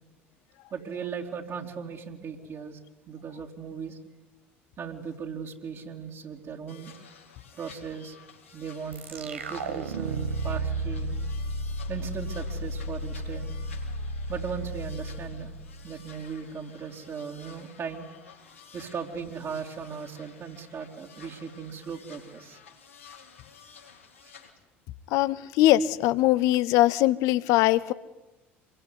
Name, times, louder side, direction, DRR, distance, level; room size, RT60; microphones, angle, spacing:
voice 1, 0.7-2.8 3.1-4.0 4.8-6.9 7.5-8.2 8.5-11.2 11.9-13.5 14.3-15.5 15.8-18.1 18.7-22.6 24.2-24.3, right 6 dB, 40° right, 0 dB, 3.7 m, -37 dB
sound 1, 6.7-24.5, left 7 dB, 85° left, 4.0 m, -52 dB
sound 2, 8.9-16.2, right 2 dB, 80° right, 1.9 m, -33 dB
voice 2, 25.1-27.9, left 15 dB, 60° left, 16 dB, 1.1 m, -21 dB
27.5 x 22.5 x 9.8 m, 1.0 s
figure-of-eight pair, 60°, 7 cm